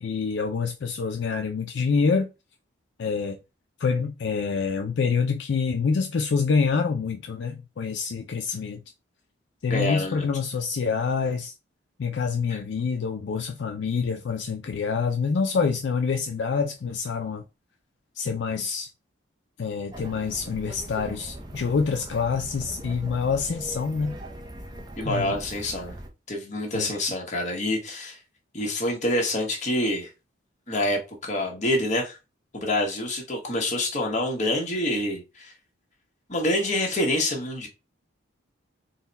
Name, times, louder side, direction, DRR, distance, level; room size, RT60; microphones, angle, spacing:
voice 1, 0.0-2.3 3.0-3.4 3.8-8.8 9.6-11.5 12.0-17.4 18.2-18.9 19.6-24.2 25.0-25.4 26.7-26.9, left 5 dB, 60° left, 0.4 m, -26 dB
voice 2, 9.7-10.2 25.0-25.9 26.3-28.2 28.5-30.1 30.7-32.2 32.5-35.5 36.3-37.7, left 1 dB, 35° left, 1.1 m, -26 dB
sound 1, 19.9-26.1, right 1 dB, 20° right, 0.6 m, -40 dB
4.0 x 2.2 x 4.0 m
head